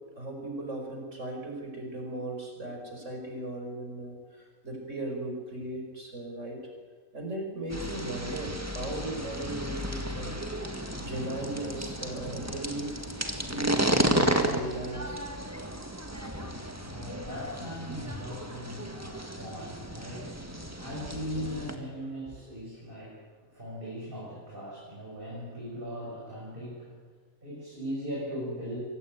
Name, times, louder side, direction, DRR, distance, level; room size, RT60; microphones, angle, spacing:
voice 1, 0.2-6.6 7.1-10.4 11.0-12.9 13.5-15.2 20.6-20.7, right 1 dB, 60° right, 2 dB, 5.7 m, -37 dB
sound 1, 7.7-21.7, right 1 dB, 10° right, 1.9 m, -33 dB
voice 2, 16.2-26.9 27.4-28.8, equal, 40° right, -6 dB, 6.7 m, -39 dB
24.0 x 17.0 x 9.2 m, 1.5 s
omnidirectional pair, 1.4 m